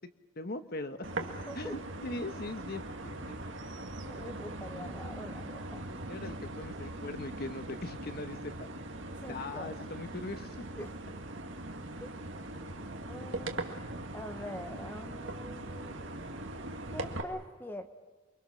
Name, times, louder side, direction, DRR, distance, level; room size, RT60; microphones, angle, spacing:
voice 1, 0.4-1.3 1.5-3.6 5.9-8.7 9.3-10.9, left 2 dB, 50° left, 9 dB, 1.2 m, -41 dB
sound 1, 1.0-17.2, right 2 dB, 60° right, 1.9 m, -41 dB
voice 2, 4.0-5.9 9.1-9.7 10.8-11.0 12.0-12.1 13.1-13.7 14.1-16.0 16.9-17.9, left 1 dB, 10° left, 7 dB, 1.2 m, -44 dB
29.0 x 23.5 x 6.4 m, 1.3 s
head